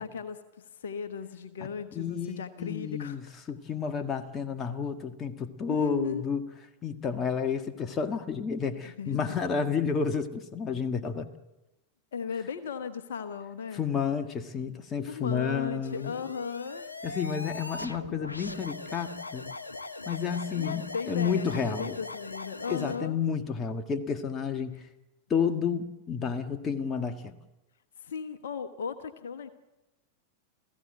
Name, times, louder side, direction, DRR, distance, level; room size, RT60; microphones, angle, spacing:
voice 1, 0.0-3.2 5.7-6.2 9.0-9.5 12.1-13.8 15.1-16.9 20.5-23.2 28.0-29.5, left 6 dB, 60° left, 1.2 m, -36 dB
voice 2, 1.9-6.5 6.8-11.3 13.7-16.1 17.0-19.5 20.1-22.0 22.7-24.9 25.3-27.3, left 6 dB, 25° left, 1.7 m, -31 dB
sound 1, 15.8-23.0, left 2 dB, 80° left, 1.0 m, -40 dB
28.5 x 16.0 x 8.0 m
figure-of-eight pair, 90°, 0 cm